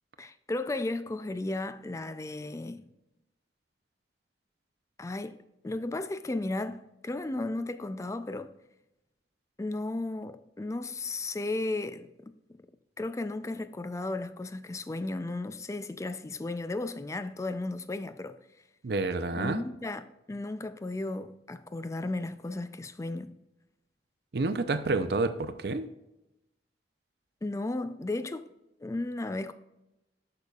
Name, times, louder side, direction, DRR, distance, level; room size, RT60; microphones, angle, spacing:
voice 1, 0.2-2.9 5.0-8.5 9.6-12.3 13.0-18.4 19.3-23.3 27.4-28.5 28.8-29.5, left 2 dB, 15° left, 0.3 m, -34 dB
voice 2, 18.8-19.6 24.3-25.9, right 3 dB, 60° right, 0.5 m, -29 dB
8.3 x 6.7 x 2.4 m
head